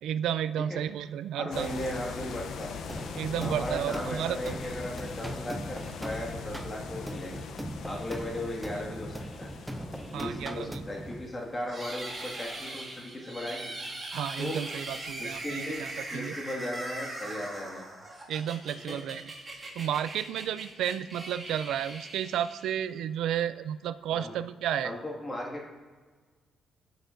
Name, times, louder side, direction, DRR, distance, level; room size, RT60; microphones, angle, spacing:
voice 1, 0.0-1.7 3.2-4.6 10.1-10.8 14.1-16.3 18.3-19.2 19.8-24.9, right 10 dB, 85° right, 14 dB, 0.4 m, -32 dB
voice 2, 1.4-2.7 3.4-7.4 7.8-9.5 10.1-13.7 14.4-14.6 15.2-15.9 16.1-17.8 18.9-19.0 24.1-24.3 24.8-25.7, left 1 dB, 20° left, -1 dB, 1.9 m, -36 dB
sound 1, 1.5-11.9, left 5 dB, 75° left, 0.7 m, -42 dB
sound 2, 2.9-11.3, right 1 dB, 5° right, 0.6 m, -40 dB
sound 3, 11.7-23.0, right 2 dB, 25° right, 2.1 m, -40 dB
15.5 x 6.5 x 2.6 m, 1.4 s
cardioid pair, 100°, 0 cm